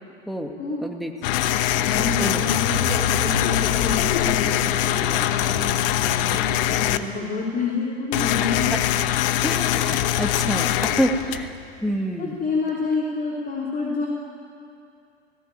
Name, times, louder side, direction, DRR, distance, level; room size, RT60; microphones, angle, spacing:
voice 1, 0.8-1.1 2.2-2.4 9.4-12.4, equal, ahead, 3 dB, 2.2 m, -27 dB
sound 1, 1.2-7.0 8.1-11.7, left 13 dB, 55° left, 1.1 m, -23 dB
sound 2, 1.4-7.0, left 5 dB, 80° left, 2.6 m, -31 dB
voice 2, 1.8-8.7 12.2-14.1, left 4 dB, 25° left, -3 dB, 3.6 m, -28 dB
18.5 x 18.5 x 9.8 m, 2.5 s
hypercardioid pair, 100°, 33 cm